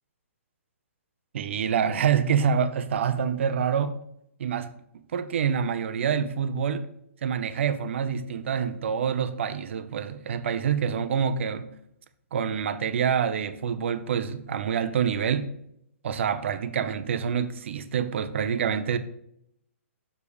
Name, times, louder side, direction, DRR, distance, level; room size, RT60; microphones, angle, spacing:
voice 1, 1.3-4.0 4.4-4.7 5.1-6.9 7.2-11.7 12.3-15.5 16.0-19.0, right 7 dB, 60° right, 0.7 m, -26 dB
6.6 x 5.1 x 4.8 m
hypercardioid pair, 155°, 8 cm